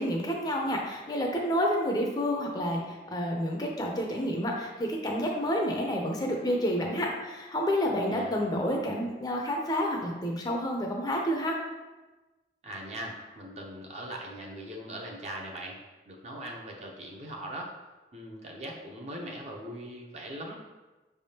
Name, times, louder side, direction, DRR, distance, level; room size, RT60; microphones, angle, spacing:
voice 1, 0.0-11.6, equal, 20° left, 0 dB, 0.5 m, -29 dB
voice 2, 8.1-8.4 12.6-15.8 16.1-17.7 18.1-20.6, right 1 dB, 35° right, 0 dB, 0.6 m, -40 dB
5.5 x 3.4 x 2.8 m, 1.2 s
head